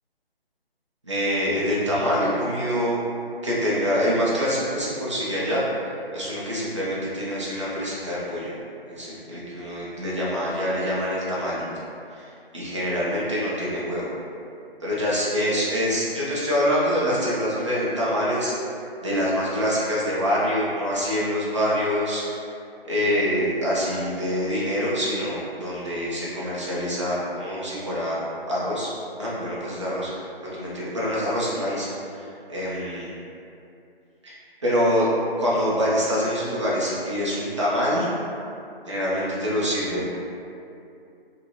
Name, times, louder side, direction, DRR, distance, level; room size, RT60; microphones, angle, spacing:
voice 1, 1.0-3.0 3.4-5.6 6.1-8.5 8.9-11.7 12.1-14.1 14.8-18.5 19.0-22.2 22.8-28.2 28.5-28.9 29.2-30.1 30.4-31.9 32.1-33.1 34.2-34.4 34.6-35.1 35.4-38.1 38.9-40.2, equal, 30° right, -8 dB, 0.5 m, -25 dB
2.8 x 2.7 x 2.3 m, 2.6 s
figure-of-eight pair, 160°, 31 cm